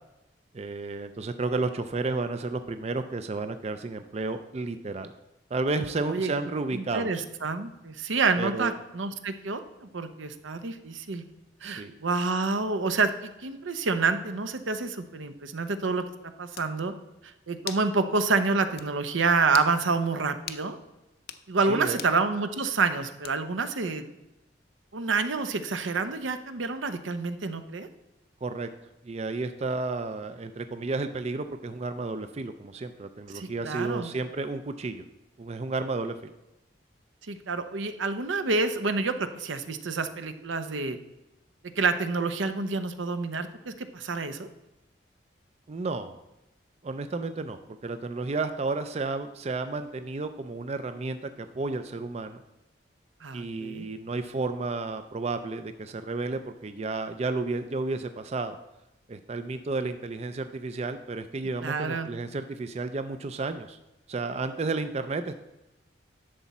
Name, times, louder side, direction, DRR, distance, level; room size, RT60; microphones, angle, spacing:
voice 1, 0.5-5.1 5.5-7.2 8.4-8.7 11.6-11.9 21.7-22.0 28.4-28.7 29.0-35.0 35.4-36.3 45.7-46.1 46.8-52.4 53.3-58.6 59.1-63.8 64.1-65.4, right 3 dB, 35° right, 9 dB, 0.4 m, -32 dB
voice 2, 6.7-11.2 11.6-13.1 13.4-16.1 16.4-16.9 17.2-20.8 21.5-24.1 24.9-27.9 33.3-34.1 37.3-41.0 41.8-44.5 53.2-53.9 61.6-62.1, right 4 dB, 85° right, 9 dB, 0.8 m, -28 dB
sound 1, 16.1-16.2 16.5-16.7 17.7-17.9 18.3-18.4 18.8-18.9 19.5-19.7 20.5-20.7 21.2-21.4 22.0-22.2 23.2-23.6, left 10 dB, 55° left, 0.6 m, -39 dB
11.0 x 7.0 x 4.2 m, 0.95 s
head